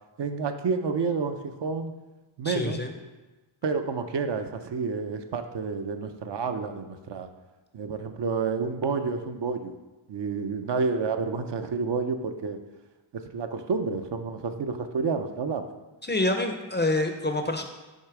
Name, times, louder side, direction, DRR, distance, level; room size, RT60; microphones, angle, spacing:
voice 1, 0.2-1.9 2.4-2.8 3.6-7.3 7.7-9.8 10.1-12.6 13.1-15.7, right 5 dB, 60° right, 7 dB, 0.5 m, -29 dB
voice 2, 2.4-2.9 16.0-17.6, left 2 dB, 25° left, 5 dB, 0.5 m, -27 dB
6.5 x 3.2 x 4.7 m, 1.1 s
wide cardioid pair, 65°, 49 cm